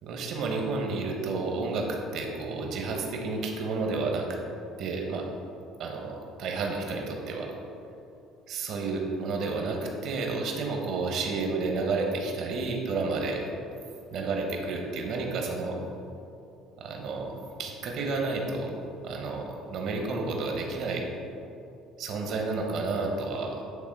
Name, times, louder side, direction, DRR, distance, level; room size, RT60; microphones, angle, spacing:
voice 1, 0.0-4.3 4.8-5.3 5.8-7.5 8.5-13.4 14.1-15.8 16.8-18.7 19.0-19.4 19.7-21.1 22.0-23.6, right 3 dB, 65° right, 1 dB, 1.1 m, -31 dB
9.2 x 3.4 x 4.7 m, 2.7 s
hypercardioid pair, 70°, 0 cm